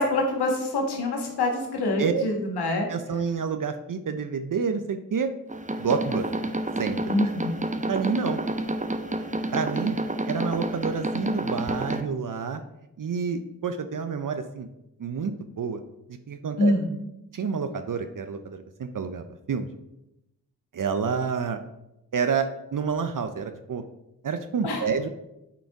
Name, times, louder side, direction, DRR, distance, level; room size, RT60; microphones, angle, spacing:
voice 1, 0.0-2.9 7.1-7.6 16.6-16.8 24.6-24.8, left 2 dB, 85° left, 2 dB, 1.5 m, -25 dB
voice 2, 2.9-5.3 5.8-6.3 6.8-7.0 7.9-8.4 9.5-10.0 10.3-12.6 13.0-14.7 15.0-15.8 16.3-16.7 17.3-19.7 20.7-21.6 22.1-23.8 24.2-25.1, right 6 dB, 55° right, 8 dB, 0.7 m, -28 dB
sound 1, 5.5-12.0, right 1 dB, 20° right, 0.8 m, -29 dB
8.4 x 4.0 x 4.7 m, 0.88 s
supercardioid pair, 40°, 38 cm